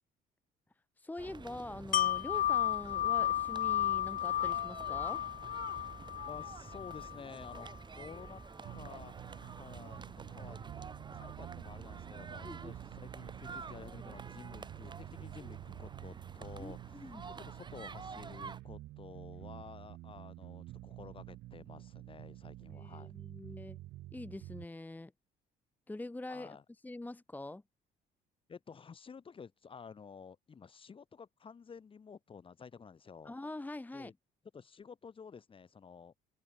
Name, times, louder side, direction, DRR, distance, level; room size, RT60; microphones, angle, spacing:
voice 1, 1.0-5.2 12.4-12.7 16.6-17.2 22.7-23.8 24.1-25.1 25.9-26.6 26.8-27.6 33.2-34.1, left 2 dB, 10° left, 1.2 m, -44 dB
sound 1, 1.2-18.6, right 5 dB, 25° right, 2.5 m, -49 dB
Wind chime, 1.9-7.7 8.1-8.3, left 12 dB, 55° left, 0.6 m, -33 dB
voice 2, 6.3-8.4 8.7-9.1 9.4-10.6 10.9-23.1 26.3-26.6 28.5-33.3 33.9-34.1 34.5-36.1, left 6 dB, 30° left, 2.2 m, -52 dB
sound 2, 8.6-24.7, right 16 dB, 75° right, 0.9 m, -49 dB
open air
cardioid pair, 110°, 17 cm